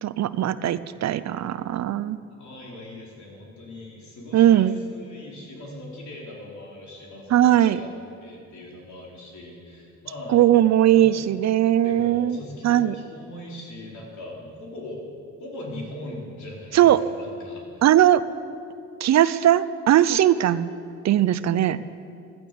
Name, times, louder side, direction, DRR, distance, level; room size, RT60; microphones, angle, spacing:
voice 1, 0.0-2.2 4.3-4.8 7.3-7.8 10.3-12.4 12.6-12.9 16.7-17.0 17.8-18.2 19.0-20.7 21.0-21.8, right 12 dB, 60° right, 15 dB, 0.7 m, -19 dB
voice 2, 2.4-7.9 8.2-10.4 10.9-11.3 11.8-15.0 15.4-17.8, left 1 dB, 70° left, -2 dB, 4.5 m, -40 dB
16.5 x 12.0 x 6.9 m, 2.5 s
cardioid pair, 90°, 30 cm